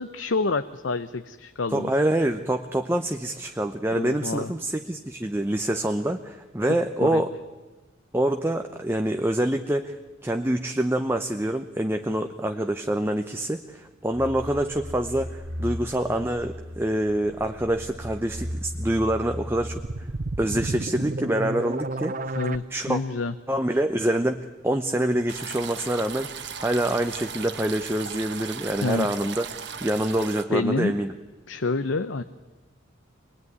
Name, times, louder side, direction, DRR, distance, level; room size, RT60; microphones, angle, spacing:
voice 1, 0.0-1.9 3.9-4.5 7.0-7.2 22.3-23.3 28.8-29.1 30.5-30.9 31.5-32.2, left 3 dB, 75° left, 11 dB, 0.7 m, -27 dB
voice 2, 1.7-7.3 8.1-10.0 10.2-19.8 20.4-22.3 22.7-23.0 23.5-24.4 24.6-26.3 26.6-29.5 29.8-31.1, right 1 dB, 10° right, 5 dB, 0.7 m, -26 dB
sound 1, 14.1-20.7, equal, 75° right, 2.3 m, -37 dB
sound 2, 19.4-22.6, right 2 dB, 45° right, 0.8 m, -31 dB
sound 3, 25.3-30.4, right 7 dB, 60° right, 1.3 m, -37 dB
24.5 x 19.5 x 9.5 m, 1.2 s
head